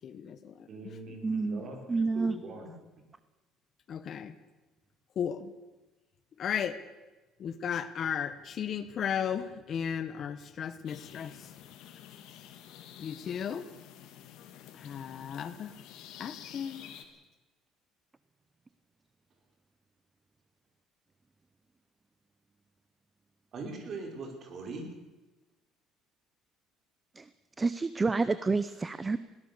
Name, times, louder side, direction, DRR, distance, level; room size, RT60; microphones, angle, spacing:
voice 1, 0.0-1.2 3.9-4.4 5.1-5.5 6.4-6.8 7.4-11.5 13.0-13.7 14.7-15.7 16.2-16.9, left 8 dB, 40° left, 13 dB, 1.2 m, -35 dB
voice 2, 0.7-1.8 2.1-2.7 23.5-24.9, right 3 dB, 40° right, 4 dB, 5.0 m, -41 dB
voice 3, 1.2-1.6 1.9-2.4 27.2-27.3 27.6-29.2, right 3 dB, 15° right, 14 dB, 0.6 m, -29 dB
sound 1, 10.9-17.1, left 10 dB, 70° left, 2.7 m, -50 dB
21.5 x 18.0 x 6.9 m, 1.1 s
cardioid pair, 145°, 0 cm